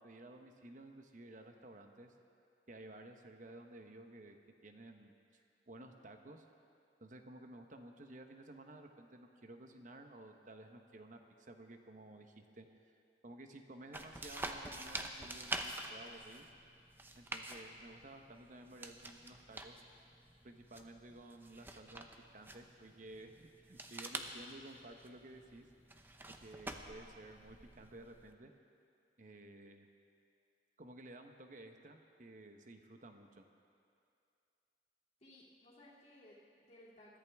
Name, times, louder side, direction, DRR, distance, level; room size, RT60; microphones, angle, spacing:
voice 1, 0.0-2.1 2.7-4.4 4.6-6.4 7.0-12.9 13.2-16.5 17.1-19.8 20.4-22.1 22.3-25.7 26.3-28.5 29.2-29.9 30.8-33.4, right 1 dB, 45° right, 5 dB, 1.0 m, -54 dB
sound 1, 13.9-28.3, right 2 dB, 10° right, 0.7 m, -47 dB
voice 2, 35.2-37.2, left 1 dB, 40° left, -6 dB, 2.9 m, -60 dB
21.5 x 14.0 x 3.6 m, 2.5 s
head